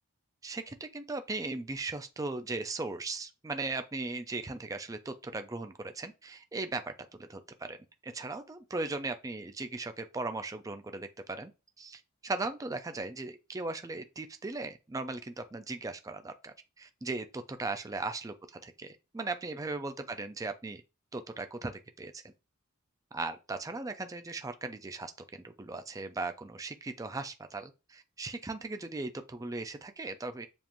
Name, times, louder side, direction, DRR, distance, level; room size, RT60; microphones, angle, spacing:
voice 1, 0.4-6.9 7.2-7.8 8.0-11.5 11.8-18.3 18.6-20.8 21.1-22.2 23.1-30.5, right 3 dB, 15° right, 0.4 m, -38 dB
7.1 x 2.5 x 3.0 m
head